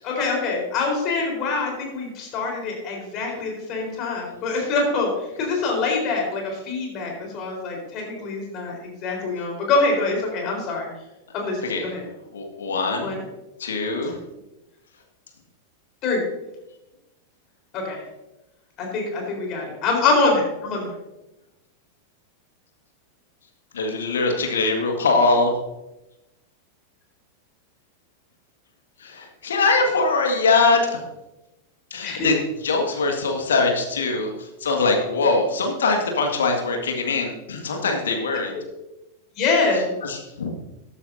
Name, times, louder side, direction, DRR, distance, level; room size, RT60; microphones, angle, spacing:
voice 1, 0.0-5.1 5.4-8.8 9.0-10.9 11.3-12.0 13.0-13.2 16.0-16.2 17.7-18.0 18.8-20.9 32.0-32.3 39.3-39.9, left 3 dB, 35° left, 0 dB, 4.1 m, -24 dB
voice 2, 12.3-13.1 13.6-14.1 23.7-25.5 29.0-31.0 31.9-32.3 32.6-34.3 34.6-38.6 40.0-40.5, left 3 dB, 65° left, 3 dB, 1.9 m, -22 dB
13.5 x 11.0 x 2.7 m, 0.96 s
figure-of-eight pair, 90°, 0 cm